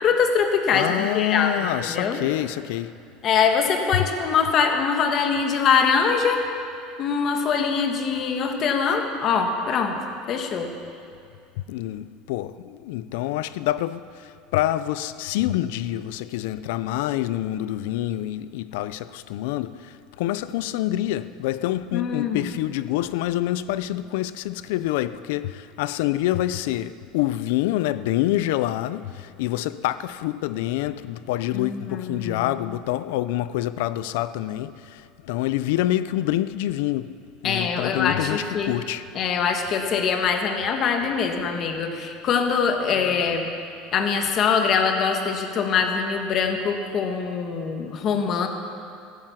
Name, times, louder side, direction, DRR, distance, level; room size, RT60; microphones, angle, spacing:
voice 1, 0.0-2.2 3.2-6.4 7.0-10.0 10.3-10.7 21.9-22.5 31.5-32.5 37.4-38.7 39.1-43.5 43.9-48.5, left 6 dB, 35° left, 1.6 m, -23 dB
voice 2, 0.7-3.0 3.9-4.0 11.7-37.2 37.4-39.1 42.9-43.2, left 14 dB, 75° left, 0.5 m, -26 dB
15.5 x 15.0 x 5.9 m
cardioid pair, 150°, 0 cm